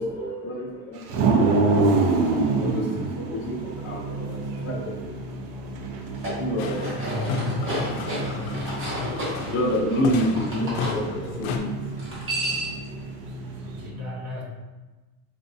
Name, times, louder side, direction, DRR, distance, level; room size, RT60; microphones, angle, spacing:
voice 1, 0.0-2.0 2.6-5.6 6.3-7.4 7.9-8.2 8.5-8.6 9.5-11.8, equal, 25° left, -5 dB, 0.6 m, -29 dB
sound 1, 1.1-13.9, right 3 dB, 85° right, 0.7 m, -28 dB
sound 2, 6.0-11.0 12.0-12.9, right 1 dB, 30° right, 1.2 m, -32 dB
sound 3, 6.6-11.6, left 5 dB, 65° left, 0.6 m, -32 dB
voice 2, 7.0-7.7 10.2-10.7 13.6-14.4, left 2 dB, 50° right, -4 dB, 1.2 m, -35 dB
4.7 x 2.5 x 2.6 m, 1.2 s
cardioid pair, 165°, 43 cm